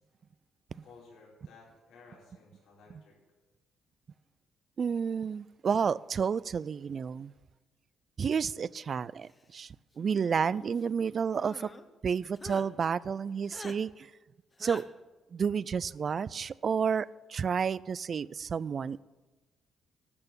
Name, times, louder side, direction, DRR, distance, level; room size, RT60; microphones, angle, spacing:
voice 1, 0.7-3.2, left 4 dB, 85° left, 4.5 m, -56 dB
voice 2, 4.8-7.3 8.2-11.7 12.0-14.1 14.6-14.8 15.3-19.0, right 6 dB, 45° right, 0.4 m, -31 dB
sound 1, 10.0-10.8 11.4-11.9 12.4-12.7 13.5-13.8 14.6-14.8, left 3 dB, 25° left, 1.1 m, -46 dB
12.5 x 6.8 x 9.9 m
cardioid pair, 90°, 0 cm